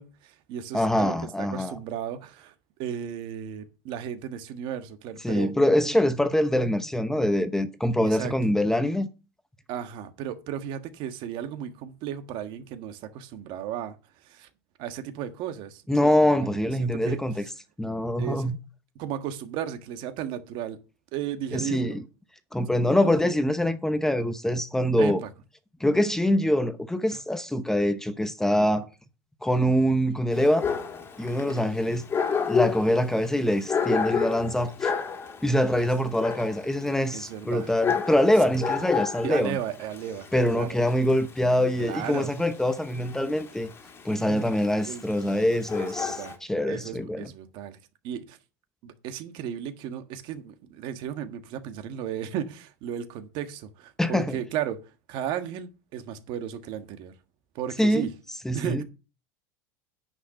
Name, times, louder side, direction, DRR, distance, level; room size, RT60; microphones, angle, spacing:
voice 1, 0.0-2.5 2.8-5.5 8.0-8.3 9.7-13.9 14.2-14.5 14.8-16.1 16.4-17.2 18.2-18.5 18.9-20.8 21.1-22.0 23.0-23.3 25.0-25.3 28.6-28.7 31.5-31.8 35.8-35.9 37.1-37.7 39.2-40.8 41.8-42.3 44.3-45.0 45.8-46.3 46.7-47.8 48.0-48.4 48.8-54.8 55.1-57.1 57.5-58.1 58.5-58.8, right 9 dB, 55° right, 1.6 m, -35 dB
voice 2, 0.7-1.8 5.2-9.1 15.9-17.4 17.8-18.6 21.5-22.0 22.5-25.2 25.8-28.9 29.4-30.7 31.2-32.0 32.5-34.9 35.4-39.6 40.3-43.7 44.0-47.3 54.0-54.4 57.8-58.1 58.4-58.8, left 1 dB, 5° left, 0.8 m, -24 dB
Dog, 30.3-46.3, left 6 dB, 25° left, 2.1 m, -31 dB
9.7 x 6.4 x 5.7 m
supercardioid pair, 135°, 10 cm